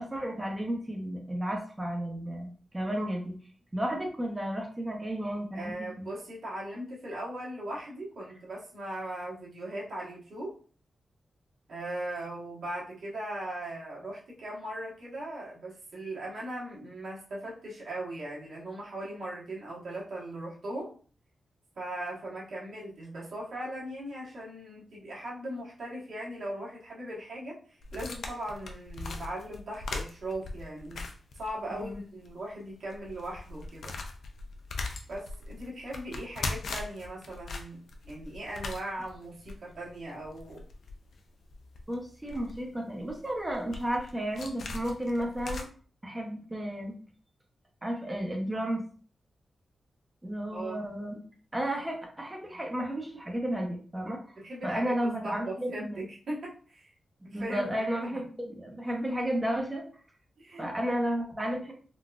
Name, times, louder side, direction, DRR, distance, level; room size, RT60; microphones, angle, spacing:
voice 1, 0.0-2.5 2.7-3.4 3.7-6.1 31.7-32.0 41.9-45.6 46.0-47.0 47.8-48.8 50.2-51.2 51.5-54.3 54.6-56.0 57.3-59.8 60.6-61.7, right 1 dB, 15° right, 1 dB, 0.8 m, -33 dB
voice 2, 5.5-10.5 11.7-20.9 21.7-27.6 27.9-31.0 31.3-34.0 35.1-40.6 50.5-50.8 54.4-54.9 55.2-56.9 57.2-57.7 60.4-60.9, right 1 dB, 65° right, -5 dB, 1.3 m, -39 dB
sound 1, 27.8-32.0 32.2-32.3 32.8-45.6, left 3 dB, 75° left, 0.5 m, -40 dB
3.9 x 2.3 x 2.4 m, 0.41 s
wide cardioid pair, 130°, 0 cm